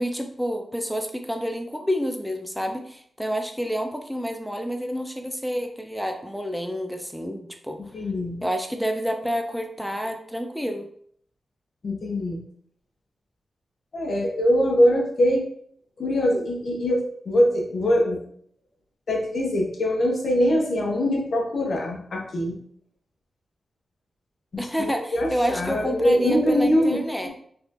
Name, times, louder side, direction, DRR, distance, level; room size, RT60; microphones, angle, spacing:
voice 1, 0.0-7.8 8.4-10.9 24.6-27.3, equal, ahead, 5 dB, 0.5 m, -29 dB
voice 2, 7.8-8.4 11.8-12.4 13.9-15.5 16.0-18.2 19.1-22.6 24.5-27.3, equal, 65° left, 0 dB, 0.9 m, -23 dB
3.3 x 3.0 x 2.6 m, 0.63 s
cardioid pair, 60°, 0 cm